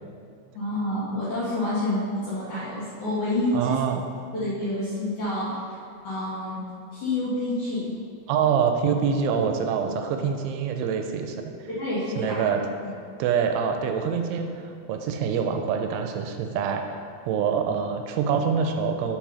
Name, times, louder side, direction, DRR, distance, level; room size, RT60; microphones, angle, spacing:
voice 1, 0.5-3.8 4.4-5.5 6.0-6.6 6.9-7.9 11.7-12.4, left 1 dB, 55° left, -11 dB, 2.5 m, -28 dB
voice 2, 3.5-4.0 8.3-11.7 12.2-12.6 13.2-19.2, right 6 dB, 85° right, 5 dB, 2.9 m, -25 dB
7.2 x 4.7 x 5.5 m, 2.4 s
omnidirectional pair, 5.5 m